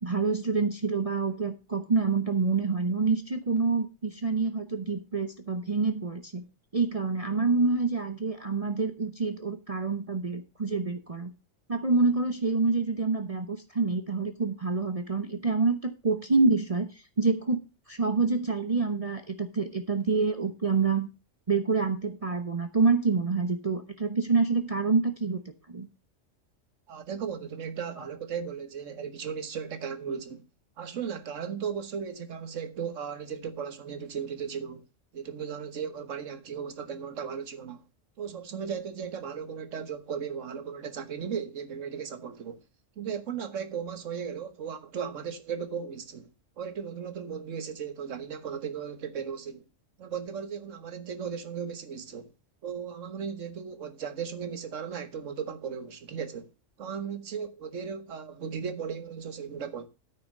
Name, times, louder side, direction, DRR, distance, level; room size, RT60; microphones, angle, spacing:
voice 1, 0.0-6.4 6.7-11.3 11.7-16.9 17.2-17.6 17.9-21.1 21.5-25.4 25.7-25.9, right 4 dB, 30° right, 0.9 m, -27 dB
voice 2, 26.9-30.4 30.8-34.8 35.1-37.8 38.2-42.6 43.0-46.3 46.6-49.6 50.0-52.3 52.6-56.5 56.8-59.9, right 7 dB, 75° right, 1.6 m, -36 dB
9.4 x 5.8 x 6.5 m
omnidirectional pair, 1.3 m